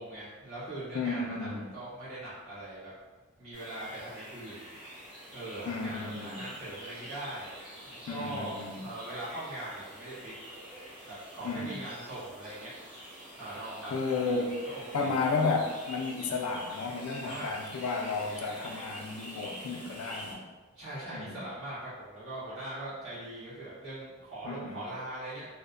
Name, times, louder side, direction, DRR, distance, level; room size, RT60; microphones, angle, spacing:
voice 1, 0.0-2.9 3.4-4.6 5.3-7.5 7.8-10.3 11.0-12.7 13.3-15.3 17.2-17.6 20.7-25.5, right 1 dB, 75° right, -10 dB, 1.2 m, -41 dB
voice 2, 0.9-1.7 5.7-6.4 8.1-8.8 11.4-11.8 13.9-14.6 14.9-20.5 21.1-21.4 24.4-24.8, left 4 dB, 80° left, 3 dB, 0.3 m, -32 dB
sound 1, 3.5-20.3, equal, 25° right, 0.8 m, -46 dB
2.7 x 2.0 x 2.4 m, 1.3 s
head